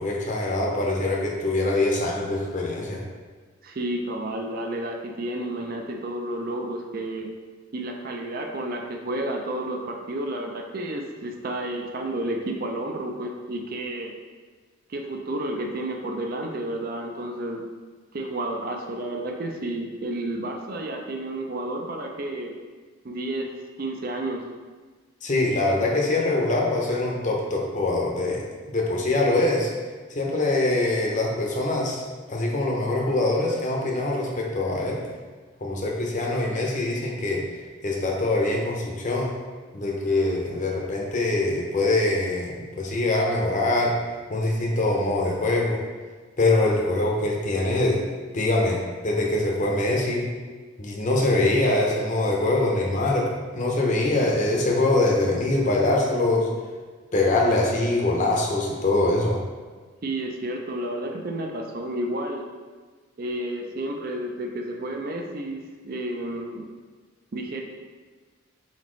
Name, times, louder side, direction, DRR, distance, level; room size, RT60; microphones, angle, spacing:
voice 1, 0.0-3.0 25.2-28.4 28.7-29.7 30.2-32.0 32.3-35.0 35.6-37.4 37.8-39.3 39.7-43.9 44.3-45.8 46.4-48.0 48.3-50.3 50.8-53.3 53.5-56.5 57.1-59.4, left 2 dB, 40° left, -1 dB, 0.7 m, -23 dB
voice 2, 3.6-7.3 7.7-14.1 14.9-17.6 18.1-22.5 23.0-23.5 23.8-24.4 60.0-62.5 63.2-66.7 67.3-67.6, right 1 dB, 45° right, 2 dB, 0.4 m, -31 dB
4.2 x 4.0 x 3.1 m, 1.4 s
head